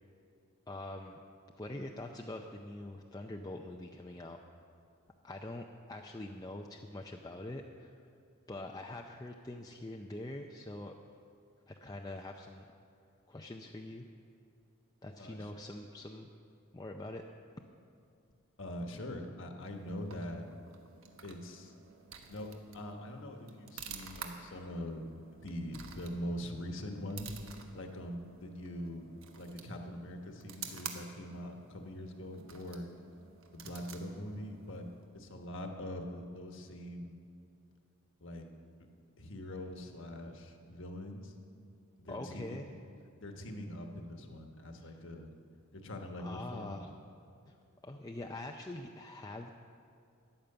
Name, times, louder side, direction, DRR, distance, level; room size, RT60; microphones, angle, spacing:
voice 1, 0.7-1.2 1.6-4.4 5.2-8.0 8.5-10.9 11.7-12.7 13.3-14.1 15.0-16.3 16.7-17.2 42.1-42.7 44.8-45.0 46.2-46.9 47.5-47.6 47.8-49.5, left 1 dB, 15° left, 2 dB, 0.5 m, -44 dB
voice 2, 15.2-15.5 18.6-20.4 21.2-21.7 22.3-25.1 25.4-27.4 27.7-29.1 29.3-32.9 33.5-34.9 35.1-37.2 38.2-38.5 39.2-41.3 42.0-42.6 43.1-45.3 45.7-46.9, equal, 60° left, 4 dB, 1.4 m, -43 dB
sound 1, 19.6-35.2, right 6 dB, 60° right, 1.3 m, -51 dB
14.0 x 10.5 x 6.8 m, 2.5 s
head